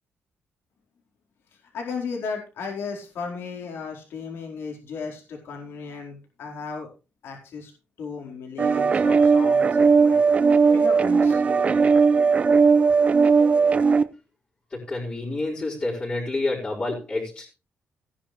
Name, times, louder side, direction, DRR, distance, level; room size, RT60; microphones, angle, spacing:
voice 1, 1.7-6.9 7.2-7.7 8.0-10.2 10.7-11.4, left 5 dB, 75° left, 2 dB, 4.3 m, -35 dB
sound 1, 8.6-14.0, right 5 dB, 35° right, 0.7 m, -18 dB
voice 2, 14.7-17.4, left 2 dB, 25° left, -7 dB, 5.0 m, -28 dB
16.5 x 10.5 x 3.3 m, 0.31 s
cardioid pair, 145°, 4 cm